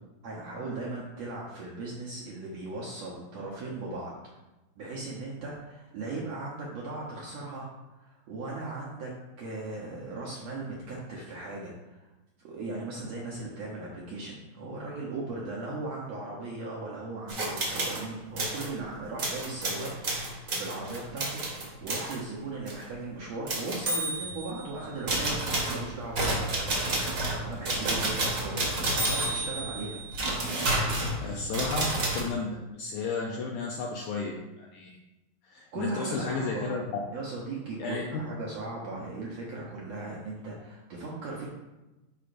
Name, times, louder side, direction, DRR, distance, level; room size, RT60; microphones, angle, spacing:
voice 1, 0.2-4.1 4.8-7.7 8.0-9.1 9.4-12.0 12.4-19.9 20.5-26.5 27.4-30.0 35.7-36.8 37.1-41.5, right 3 dB, 70° right, -4 dB, 1.7 m, -38 dB
sound 1, 17.3-18.0 18.4-18.7 19.2-22.2 22.7-22.8 23.5-24.6 25.1-32.2, right 2 dB, 50° right, 1.4 m, -30 dB
voice 2, 31.2-34.9 35.4-36.8 37.8-38.2, left 4 dB, 80° left, -1 dB, 1.8 m, -33 dB
9.7 x 5.0 x 2.6 m, 1.0 s
omnidirectional pair, 4.1 m